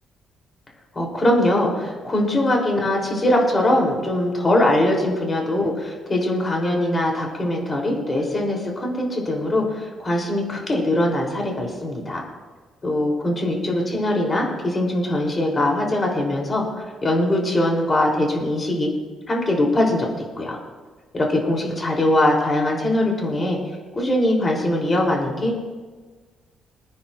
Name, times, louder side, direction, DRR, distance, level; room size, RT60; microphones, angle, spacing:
voice 1, 0.9-12.2 12.8-18.9 19.3-20.1 20.4-20.6 21.1-25.6, left 1 dB, 30° left, -1 dB, 3.5 m, -22 dB
27.0 x 9.6 x 2.6 m, 1.4 s
cardioid pair, 90°, 0 cm